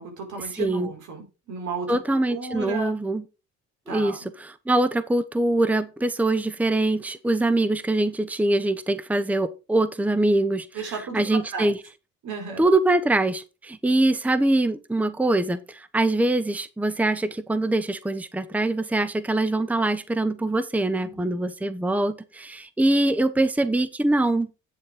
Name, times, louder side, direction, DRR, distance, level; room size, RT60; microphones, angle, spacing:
voice 1, 0.0-2.0 2.3-2.9 3.9-4.2 10.7-11.7 12.2-12.6 21.0-21.4, right 4 dB, 80° right, 4.5 m, -34 dB
voice 2, 0.6-0.9 1.9-3.2 3.9-11.8 12.6-24.5, right 2 dB, 5° right, 0.8 m, -23 dB
9.2 x 7.1 x 4.9 m
cardioid pair, 90°, 30 cm